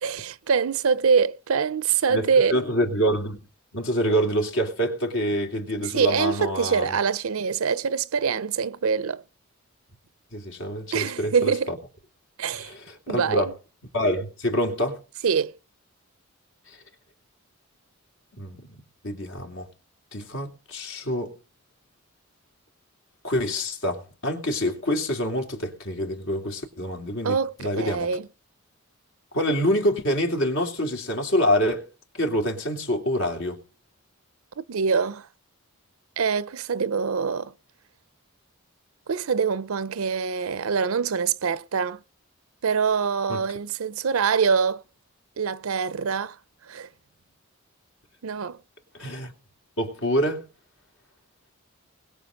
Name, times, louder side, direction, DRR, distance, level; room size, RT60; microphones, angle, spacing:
voice 1, 0.0-2.6 5.9-9.2 10.9-11.7 12.4-12.7 13.1-13.5 15.2-15.5 27.2-28.3 34.6-35.3 36.2-37.5 39.1-42.0 42.6-44.8 45.4-46.4 46.7-46.9 48.2-48.6, right 6 dB, 80° right, 0.6 m, -24 dB
voice 2, 2.1-3.4 3.7-7.0 10.3-11.8 12.5-13.5 13.9-15.0 16.7-16.8 18.3-18.8 19.0-19.7 20.1-21.3 23.2-28.1 29.3-31.8 32.1-33.6 43.3-43.4 49.0-49.3 49.8-50.4, equal, 70° left, 3.1 m, -26 dB
21.0 x 7.2 x 5.3 m
head